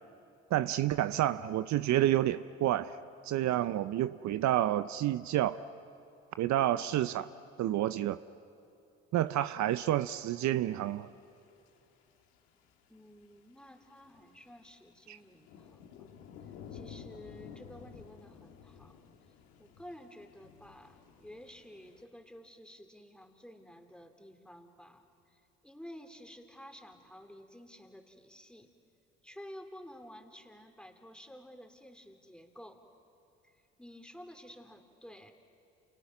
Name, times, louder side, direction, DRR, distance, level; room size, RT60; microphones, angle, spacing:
voice 1, 0.5-3.0 3.2-5.6 6.4-7.3 7.6-8.2 9.1-11.1 15.1-15.2, right 13 dB, 60° right, 13 dB, 0.7 m, -29 dB
sound 1, 9.3-9.4 9.8-11.1 11.3-22.0, left 7 dB, 85° left, 1.9 m, -53 dB
voice 2, 12.9-16.0 16.7-19.0 19.6-28.7 29.2-32.8 33.4-33.5 33.8-35.3, equal, 5° left, 5 dB, 3.2 m, -52 dB
29.0 x 29.0 x 6.0 m, 2.8 s
hypercardioid pair, 55°, 32 cm